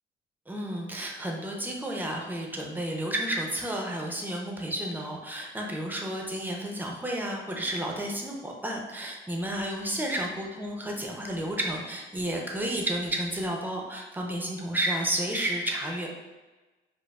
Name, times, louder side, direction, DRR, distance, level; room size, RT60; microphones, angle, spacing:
voice 1, 0.5-16.1, right 1 dB, 10° right, 0 dB, 0.6 m, -31 dB
5.0 x 2.0 x 2.3 m, 1.2 s
cardioid pair, 90°, 20 cm